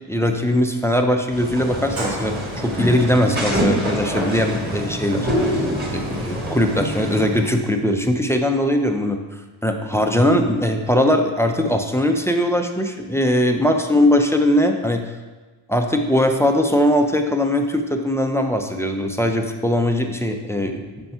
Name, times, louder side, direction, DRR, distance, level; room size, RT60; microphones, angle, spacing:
voice 1, 0.1-2.3 2.6-5.6 5.9-15.0 15.7-20.8, left 1 dB, 5° left, 4 dB, 0.5 m, -20 dB
sound 1, 1.3-7.2, equal, 20° right, 1.6 m, -26 dB
Sliding door, 1.6-7.6, right 2 dB, 85° right, 1.8 m, -33 dB
7.9 x 4.5 x 5.7 m, 1.3 s
wide cardioid pair, 140°, 46 cm